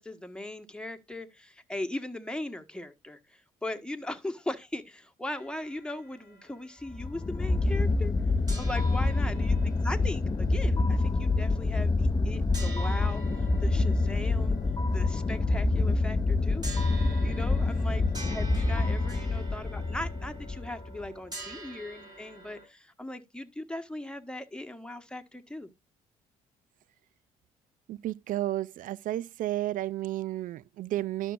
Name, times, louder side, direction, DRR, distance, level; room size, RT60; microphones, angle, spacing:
voice 1, 0.0-8.1 8.6-13.2 13.6-14.6 14.9-16.7 17.2-25.7, left 1 dB, 5° left, 1.6 m, -39 dB
sound 1, 5.3-8.2 8.5-22.6, right 1 dB, 25° right, 5.7 m, -47 dB
sound 2, 6.9-21.1, left 3 dB, 25° left, 0.7 m, -27 dB
voice 2, 27.9-31.3, right 14 dB, 60° right, 0.4 m, -32 dB
12.5 x 6.2 x 2.5 m
hypercardioid pair, 55°, 16 cm